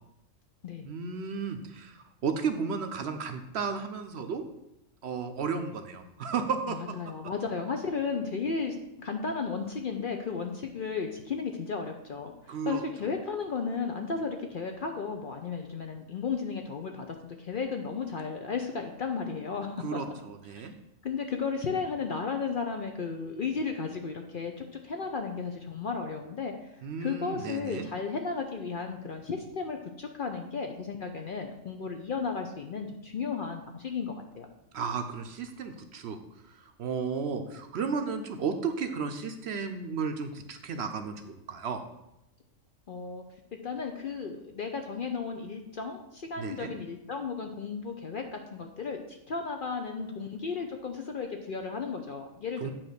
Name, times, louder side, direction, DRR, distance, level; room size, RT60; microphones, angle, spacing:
voice 1, 0.9-4.4 5.0-6.8 12.5-12.8 19.8-20.7 26.8-27.9 34.7-36.2 36.5-41.8 46.4-46.7 52.6-52.7, right 5 dB, 60° right, 7 dB, 0.8 m, -33 dB
voice 2, 6.7-20.0 20.5-20.6 21.0-34.5 42.9-43.2 43.5-52.7, left 5 dB, 55° left, 4 dB, 0.6 m, -34 dB
8.8 x 3.0 x 6.5 m, 0.88 s
omnidirectional pair, 1.4 m